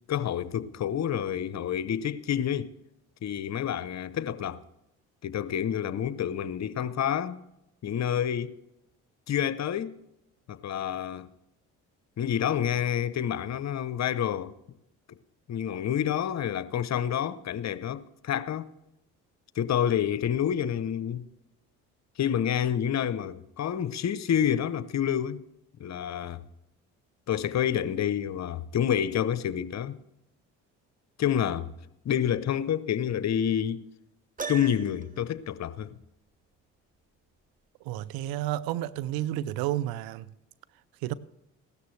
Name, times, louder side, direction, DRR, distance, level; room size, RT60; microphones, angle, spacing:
voice 1, 0.1-2.7 3.2-4.6 5.2-7.4 7.8-8.6 9.3-10.0 10.5-11.3 12.2-14.5 15.5-18.7 19.6-21.3 22.2-25.4 25.8-26.4 27.3-30.0 31.2-31.7 32.0-33.8 34.5-36.0, left 9 dB, 50° left, 0.8 m, -28 dB
Piano, 34.4-35.2, right 5 dB, 20° right, 0.9 m, -37 dB
voice 2, 37.9-40.3 41.0-41.1, right 14 dB, 75° right, 0.6 m, -31 dB
16.0 x 13.0 x 3.2 m
hypercardioid pair, 60°, 36 cm